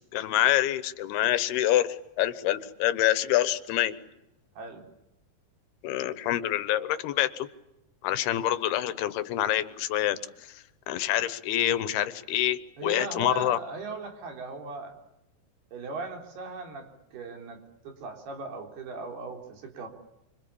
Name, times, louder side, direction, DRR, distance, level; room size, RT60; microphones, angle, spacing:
voice 1, 0.1-3.9 5.8-7.5 8.0-10.2 10.9-13.6, left 13 dB, 85° left, 14 dB, 3.2 m, -26 dB
voice 2, 4.6-4.9 12.8-14.9 15.7-19.9, right 4 dB, 90° right, 3 dB, 5.8 m, -38 dB
26.5 x 26.0 x 8.6 m, 0.90 s
omnidirectional pair, 4.4 m